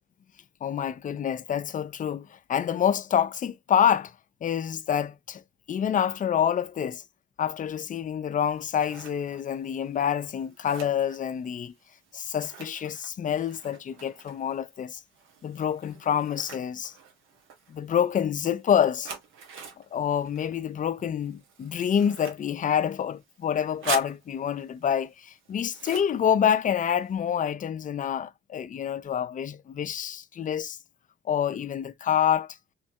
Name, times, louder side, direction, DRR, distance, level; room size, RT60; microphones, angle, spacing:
voice 1, 0.6-4.1 4.4-5.4 5.7-7.0 7.4-11.7 12.1-15.0 15.4-16.9 17.7-19.1 19.9-30.8 31.3-32.6, left 9 dB, 40° left, 0.5 m, -27 dB
Scissors, 8.4-27.2, right 6 dB, 85° right, 1.2 m, -45 dB
3.3 x 3.2 x 2.7 m
cardioid pair, 90°, 20 cm